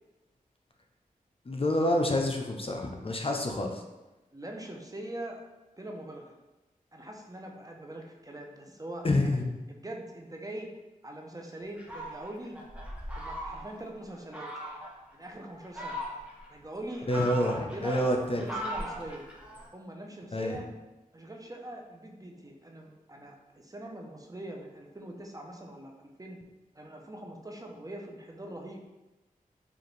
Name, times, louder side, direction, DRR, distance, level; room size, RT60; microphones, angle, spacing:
voice 1, 1.5-3.8 9.0-9.6 17.1-18.4 20.3-20.6, left 1 dB, 40° left, 2 dB, 0.6 m, -28 dB
voice 2, 4.3-5.4 5.8-6.3 6.9-9.4 9.7-10.7 11.0-12.6 13.2-14.5 15.1-16.0 16.5-19.2 19.7-20.7 21.1-26.4 26.7-28.8, right 1 dB, 25° right, 1 dB, 0.6 m, -42 dB
Fowl, 11.8-13.8 14.3-14.9 15.5-16.5 16.9-19.7, equal, 10° right, 1.0 m, -39 dB
4.9 x 2.5 x 3.1 m, 1.1 s
cardioid pair, 45°, 15 cm